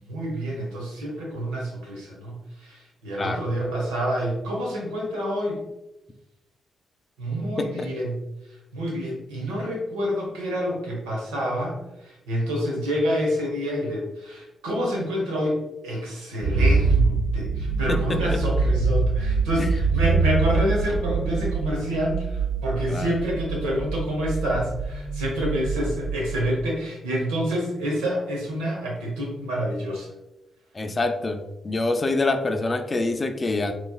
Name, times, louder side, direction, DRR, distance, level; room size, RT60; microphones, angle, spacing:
voice 1, 0.0-5.7 7.2-8.2 8.5-30.1, equal, 85° right, -1 dB, 0.9 m, -28 dB
sound 1, 16.4-26.5, right 4 dB, 65° right, 0.5 m, -24 dB
voice 2, 30.7-33.7, left 2 dB, 35° left, 7 dB, 0.5 m, -26 dB
4.0 x 3.1 x 2.3 m, 0.95 s
hypercardioid pair, 45°, 0 cm